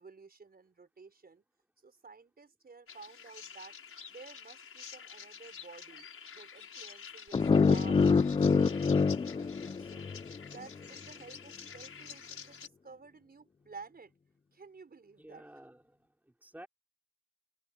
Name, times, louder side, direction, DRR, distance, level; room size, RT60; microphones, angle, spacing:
voice 1, 0.0-1.4 1.8-3.8 4.1-6.1 6.3-10.0 10.5-14.1 14.5-15.5, right 4 dB, 30° right, 5.1 m, -52 dB
sound 1, 2.9-12.7, left 7 dB, 45° left, 6.8 m, -49 dB
sound 2, 7.3-10.4, left 5 dB, 20° left, 0.5 m, -26 dB
voice 2, 15.2-16.7, right 1 dB, 5° right, 3.6 m, -53 dB
open air
cardioid pair, 90°, 30 cm